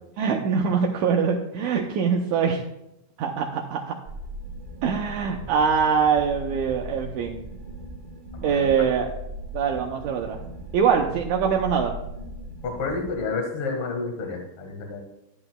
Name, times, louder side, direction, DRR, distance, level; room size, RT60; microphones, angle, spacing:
voice 1, 0.2-2.6 3.2-4.0 4.8-7.4 8.4-9.1 9.5-10.4 10.7-11.9, right 6 dB, 75° right, 1 dB, 1.9 m, -23 dB
sound 1, 4.0-13.2, right 1 dB, 60° right, 0.6 m, -38 dB
voice 2, 8.3-8.9 12.6-15.0, left 4 dB, 50° left, 3 dB, 2.2 m, -30 dB
12.0 x 10.5 x 2.3 m, 0.85 s
omnidirectional pair, 3.7 m